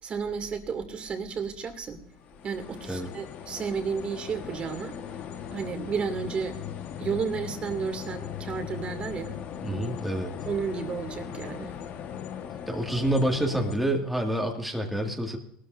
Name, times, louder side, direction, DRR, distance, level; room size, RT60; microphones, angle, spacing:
voice 1, 0.0-2.0 2.4-5.0 5.5-6.6 7.0-9.4 10.5-11.7, right 6 dB, 30° right, 6 dB, 2.3 m, -32 dB
sound 1, 2.2-13.8, left 9 dB, 50° left, 1.3 m, -39 dB
voice 2, 9.6-10.3 12.7-15.4, right 1 dB, ahead, 1 dB, 1.9 m, -27 dB
19.5 x 13.0 x 2.6 m, 0.69 s
supercardioid pair, 110°, 3 cm